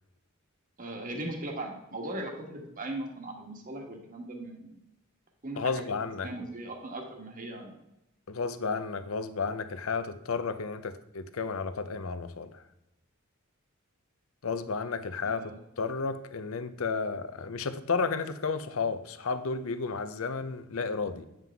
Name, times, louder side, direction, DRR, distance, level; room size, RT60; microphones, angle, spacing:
voice 1, 0.8-4.7 5.4-7.7 15.3-15.6, right 1 dB, 40° right, 2 dB, 1.5 m, -39 dB
voice 2, 5.6-6.3 8.3-12.6 14.4-21.3, left 4 dB, 75° left, 11 dB, 0.6 m, -32 dB
9.3 x 7.4 x 3.5 m, 0.91 s
head